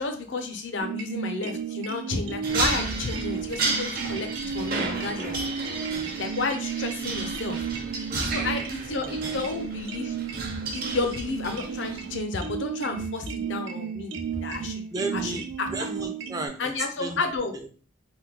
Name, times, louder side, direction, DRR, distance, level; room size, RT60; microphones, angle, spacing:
voice 1, 0.0-5.4 6.2-7.6 8.3-10.1 10.7-14.1 14.4-14.8 15.1-15.7 16.0-16.1 16.6-17.5, left 3 dB, 80° left, 5 dB, 0.6 m, -31 dB
sound 1, 0.8-16.5, right 7 dB, 90° right, 0.4 m, -34 dB
sound 2, 2.4-12.1, right 2 dB, 50° right, 0.7 m, -33 dB
voice 2, 8.1-8.5 8.8-9.4 12.9-13.1 14.1-16.7 17.0-17.2 17.5-17.7, right 2 dB, 20° right, 5 dB, 0.4 m, -36 dB
3.4 x 2.2 x 2.9 m, 0.39 s
head